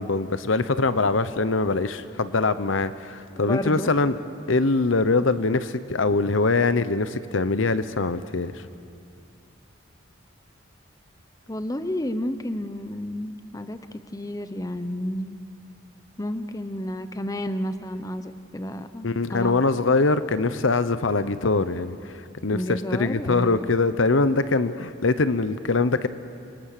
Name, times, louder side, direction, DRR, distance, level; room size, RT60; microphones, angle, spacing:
voice 1, 0.0-4.2 4.5-8.5 19.0-22.2 22.4-26.1, left 3 dB, 90° left, 13 dB, 0.9 m, -23 dB
voice 2, 3.4-3.9 11.5-15.4 16.2-19.6 22.5-23.6, left 1 dB, 20° left, 10 dB, 0.8 m, -31 dB
29.0 x 24.5 x 6.8 m, 2.5 s
head